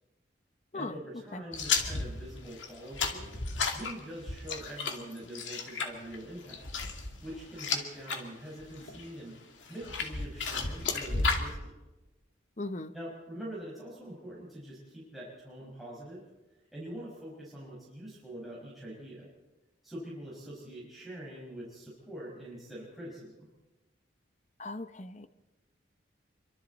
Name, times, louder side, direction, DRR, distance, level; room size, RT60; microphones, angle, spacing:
voice 1, 0.7-3.3 3.7-6.7 7.2-11.7 12.9-16.2 16.7-19.3 19.8-23.5, right 1 dB, ahead, -7 dB, 5.5 m, -44 dB
sound 1, 1.5-8.2 8.6-9.1 9.7-11.5, left 4 dB, 80° left, 2.5 m, -33 dB
voice 2, 12.6-12.9 24.6-25.3, left 2 dB, 40° left, 11 dB, 0.9 m, -38 dB
27.0 x 24.5 x 4.2 m, 1.1 s
head